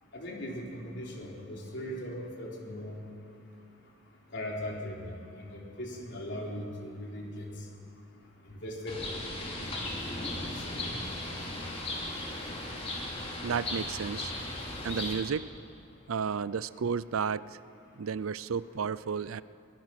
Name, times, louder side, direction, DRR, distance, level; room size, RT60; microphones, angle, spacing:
voice 1, 0.1-3.0 4.3-7.5 8.4-9.2 9.6-9.8 10.3-11.0, left 1 dB, 60° left, -2 dB, 3.9 m, -39 dB
Bird, 8.9-15.1, left 2 dB, 30° left, 3.5 m, -37 dB
voice 2, 13.4-14.3 14.8-15.5 16.1-17.4 18.0-19.4, right 6 dB, 85° right, 18 dB, 0.5 m, -32 dB
22.5 x 21.5 x 6.0 m, 2.7 s
head